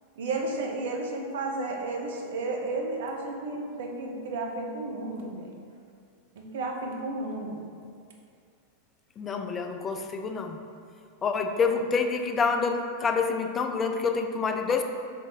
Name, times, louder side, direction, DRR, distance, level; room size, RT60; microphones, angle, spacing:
voice 1, 0.2-5.5 6.4-7.6, right 2 dB, 60° right, 0 dB, 0.6 m, -32 dB
voice 2, 9.2-10.6 11.2-14.8, left 5 dB, 20° left, 5 dB, 0.3 m, -27 dB
3.9 x 3.0 x 3.4 m, 2.3 s
figure-of-eight pair, 90°, 0 cm